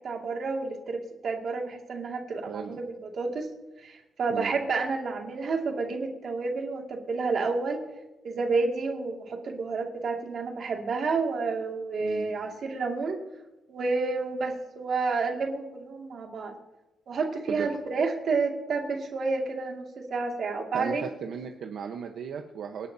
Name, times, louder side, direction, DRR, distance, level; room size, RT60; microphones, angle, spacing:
voice 1, 0.0-3.5 3.8-7.8 8.2-13.2 13.7-16.5 17.1-21.1, right 4 dB, 50° right, 1 dB, 2.3 m, -30 dB
voice 2, 20.7-22.9, right 7 dB, 65° right, 4 dB, 1.0 m, -35 dB
26.0 x 11.5 x 2.8 m, 1.0 s
cardioid pair, 160°, 0 cm